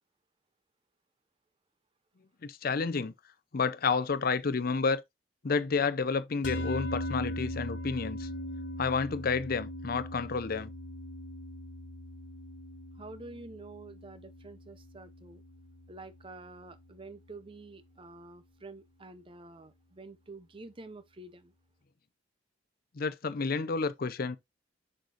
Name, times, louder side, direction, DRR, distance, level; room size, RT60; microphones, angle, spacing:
voice 1, 2.4-3.1 3.5-5.0 5.4-8.3 8.8-10.7 22.9-24.4, left 4 dB, 50° left, 0.5 m, -30 dB
sound 1, 6.4-16.9, left 1 dB, 70° left, 1.1 m, -40 dB
voice 2, 12.9-15.4 15.9-21.5, right 3 dB, 25° right, 0.6 m, -48 dB
6.5 x 6.5 x 2.8 m
head